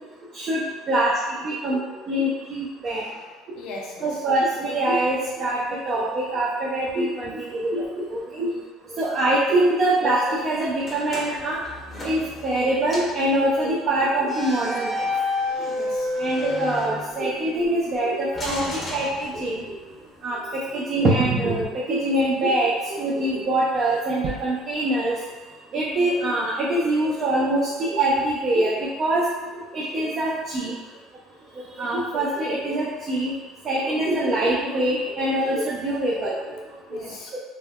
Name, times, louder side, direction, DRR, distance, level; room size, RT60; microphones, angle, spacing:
voice 1, 1.4-1.8 2.1-3.0 4.0-8.0 8.3-8.5 9.0-11.6 12.0-15.0 16.2-19.8 20.2-20.4 20.7-25.1 25.7-28.7 29.0-29.2 29.7-30.7 31.8-33.3 33.7-36.4 37.3-37.4, right 1 dB, 40° right, -5 dB, 0.4 m, -24 dB
voice 2, 2.8-4.2 8.4-8.6 15.7-16.1 36.9-37.3, left 3 dB, 70° left, -2 dB, 0.6 m, -40 dB
sound 1, 10.8-12.6 12.9-13.2 14.2-17.5 18.3-19.8, left 2 dB, 20° left, 0.6 m, -30 dB
3.6 x 2.0 x 2.3 m, 1.2 s
cardioid pair, 135°, 0 cm